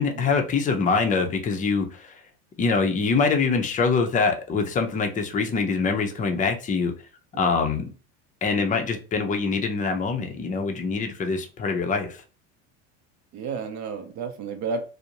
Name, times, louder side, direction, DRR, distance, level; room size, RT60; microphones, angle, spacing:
voice 1, 0.0-2.2 2.6-6.9 7.4-7.8 8.4-12.2, left 4 dB, 20° left, 0.5 m, -24 dB
voice 2, 13.3-14.9, right 5 dB, 50° right, 0.6 m, -32 dB
2.5 x 2.0 x 2.8 m
supercardioid pair, 90°, 35 cm